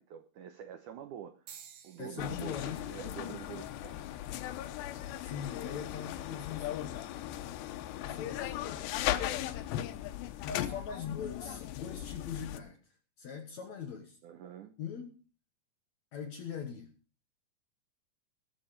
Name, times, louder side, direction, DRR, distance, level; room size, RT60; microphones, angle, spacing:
voice 1, 0.0-1.6 1.8-4.2 14.2-14.8, right 9 dB, 85° right, 9 dB, 1.7 m, -46 dB
sound 1, 1.5-5.6 6.3-6.7 7.7-7.9, right 8 dB, 65° right, 1.7 m, -57 dB
voice 2, 2.0-2.9 5.2-7.2 8.0-8.9 10.4-12.8 13.2-14.2 14.8-15.2 16.1-16.9, left 7 dB, 65° left, 5 dB, 1.9 m, -41 dB
sound 2, 2.2-12.6, left 13 dB, 80° left, 2.9 m, -38 dB
20.5 x 7.3 x 5.1 m, 0.36 s
omnidirectional pair, 4.9 m